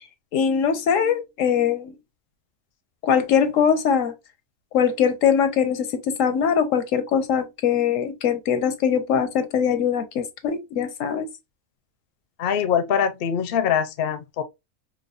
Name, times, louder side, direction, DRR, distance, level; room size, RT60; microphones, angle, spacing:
voice 1, 0.3-1.9 3.0-4.1 4.7-11.3, left 7 dB, 85° left, 1.1 m, -22 dB
voice 2, 12.4-14.4, left 8 dB, 60° left, 0.7 m, -23 dB
4.7 x 2.3 x 2.4 m
omnidirectional pair, 1.3 m